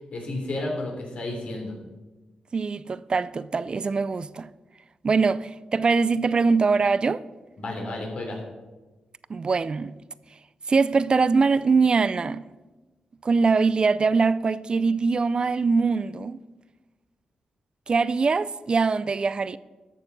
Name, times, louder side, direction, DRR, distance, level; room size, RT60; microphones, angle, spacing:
voice 1, 0.1-1.7 7.6-8.4, left 2 dB, 60° left, 3.1 m, -32 dB
voice 2, 2.5-4.5 5.0-7.2 9.3-9.9 10.7-12.4 13.2-16.4 17.9-19.6, right 4 dB, 40° right, 0.4 m, -22 dB
13.5 x 6.8 x 5.4 m
cardioid pair, 95°, 2 cm